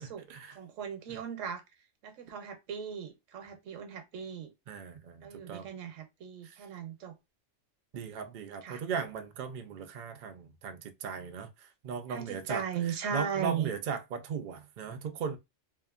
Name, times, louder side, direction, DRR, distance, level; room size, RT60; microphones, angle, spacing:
voice 1, 0.0-0.6 4.7-5.7 6.4-6.5 7.9-15.4, right 6 dB, 65° right, 0.5 m, -38 dB
voice 2, 0.5-1.6 2.0-4.5 5.2-7.1 8.6-8.8 12.1-13.7, right 7 dB, 80° right, 1.0 m, -37 dB
2.7 x 2.5 x 2.3 m
omnidirectional pair, 1.3 m